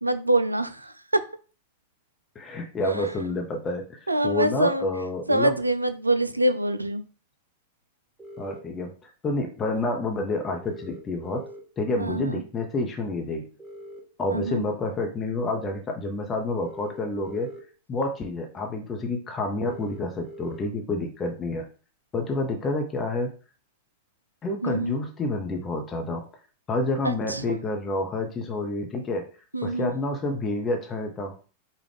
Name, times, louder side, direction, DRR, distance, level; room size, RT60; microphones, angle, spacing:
voice 1, 0.0-1.2 2.8-3.2 4.1-4.9 5.3-7.0 12.0-12.4 14.3-14.6 24.6-24.9 27.0-27.6 29.5-29.9, right 1 dB, 85° right, 12 dB, 0.3 m, -25 dB
voice 2, 2.3-5.6 8.4-11.4 11.8-13.4 14.2-17.5 17.9-21.7 22.1-23.3 24.4-26.2 26.7-29.2 29.6-31.4, left 2 dB, 25° left, 3 dB, 0.7 m, -29 dB
sound 1, 8.2-8.6 10.6-11.6 13.6-14.6 16.6-17.6 19.6-20.6, equal, 10° right, 1.1 m, -43 dB
4.8 x 2.4 x 3.3 m, 0.36 s
figure-of-eight pair, 90°, 0 cm